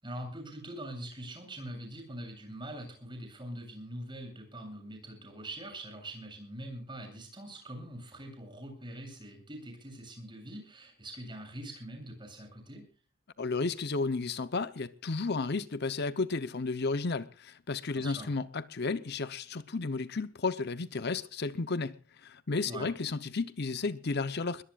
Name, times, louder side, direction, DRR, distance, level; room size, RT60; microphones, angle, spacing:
voice 1, 0.0-12.9 17.9-18.3 22.6-22.9, right 1 dB, 25° right, 7.5 m, -43 dB
voice 2, 13.4-24.6, left 3 dB, 55° left, 0.8 m, -33 dB
22.0 x 21.5 x 2.4 m
head